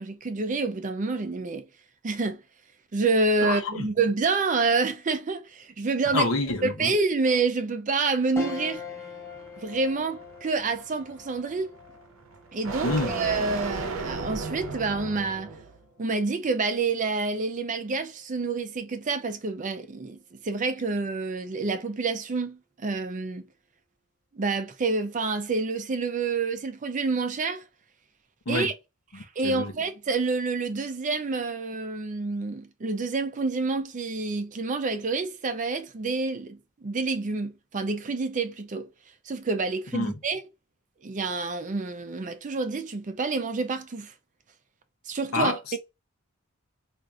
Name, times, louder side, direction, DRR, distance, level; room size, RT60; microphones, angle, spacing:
voice 1, 0.0-1.7 2.0-2.4 2.9-6.3 6.6-8.8 9.6-11.7 12.5-15.5 16.0-20.2 20.4-23.4 24.3-27.6 28.5-28.7 29.1-38.9 39.3-40.4 41.0-44.1 45.1-45.8, right 3 dB, 35° right, 0.4 m, -28 dB
voice 2, 3.4-3.9 6.1-6.9 12.8-13.1 28.5-28.7 29.1-29.7 39.9-40.1 45.3-45.8, left 2 dB, 70° left, 0.8 m, -28 dB
sound 1, 8.4-18.0 18.4-18.5 19.9-20.3, left 4 dB, 10° left, 0.6 m, -45 dB
sound 2, 8.8-15.8, right 3 dB, 65° right, 0.7 m, -36 dB
4.4 x 2.5 x 2.5 m
head